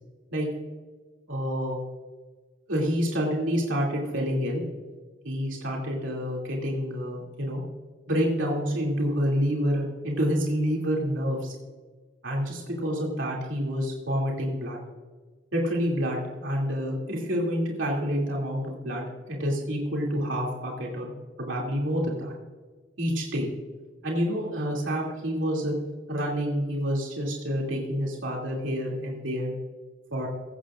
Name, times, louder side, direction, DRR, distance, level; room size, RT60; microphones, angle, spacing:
voice 1, 1.3-1.8 2.7-4.6 5.2-7.6 8.1-11.5 12.2-14.8 15.5-21.1 21.4-22.3 23.0-23.5 24.0-25.7 26.1-29.5 30.1-30.3, equal, 75° right, -2 dB, 2.6 m, -28 dB
16.5 x 14.5 x 2.5 m, 1.4 s
head